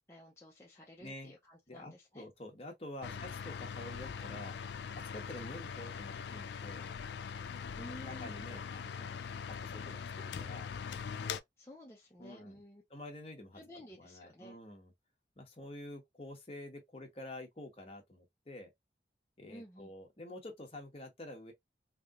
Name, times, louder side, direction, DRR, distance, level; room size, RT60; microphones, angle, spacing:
voice 1, 0.0-2.3 3.1-3.2 7.8-8.3 11.6-12.8 13.5-14.6 19.5-19.9, equal, 15° left, 0.6 m, -53 dB
voice 2, 1.0-1.3 1.7-4.5 5.1-6.9 8.0-10.7 12.2-12.6 12.9-13.6 14.0-14.9 15.4-18.7 19.4-21.5, left 1 dB, 35° left, 1.1 m, -48 dB
sound 1, 3.0-11.4, left 6 dB, 75° left, 0.4 m, -42 dB
3.3 x 2.8 x 2.4 m
head